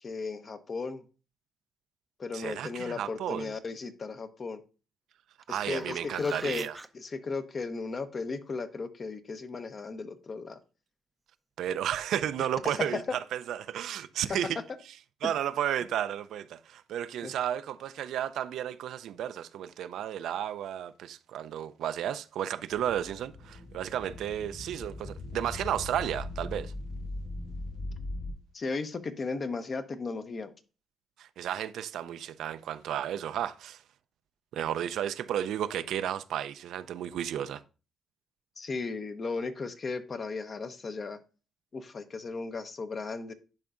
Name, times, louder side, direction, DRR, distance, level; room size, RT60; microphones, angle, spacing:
voice 1, 0.0-1.0 2.2-4.6 5.5-6.7 6.9-10.6 12.6-13.2 15.2-15.3 17.2-17.3 28.5-30.5 38.6-41.2 41.7-43.3, left 4 dB, 40° left, 0.8 m, -35 dB
voice 2, 2.3-3.5 5.5-6.8 11.6-14.6 15.2-26.7 31.2-33.8 34.5-37.6, right 10 dB, 80° right, 0.4 m, -33 dB
sound 1, 5.4-6.9 11.7-11.8, right 1 dB, 10° right, 0.5 m, -44 dB
sound 2, 22.7-28.3, left 2 dB, 65° left, 3.4 m, -40 dB
10.5 x 4.6 x 2.5 m
cardioid pair, 90°, 0 cm